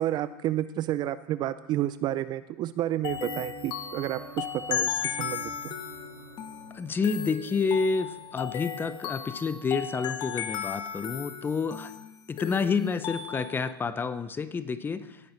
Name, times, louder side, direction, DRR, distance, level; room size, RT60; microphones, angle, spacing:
voice 1, 0.0-5.7, right 13 dB, 30° right, 15 dB, 0.3 m, -30 dB
sound 1, 3.0-13.7, left 9 dB, 35° left, 1.2 m, -36 dB
sound 2, 3.1-10.4, right 6 dB, 65° right, 2.9 m, -49 dB
voice 2, 6.7-11.9 12.3-15.2, left 5 dB, 15° left, 13 dB, 0.6 m, -29 dB
17.5 x 9.5 x 3.2 m, 0.98 s
hypercardioid pair, 120°, 14 cm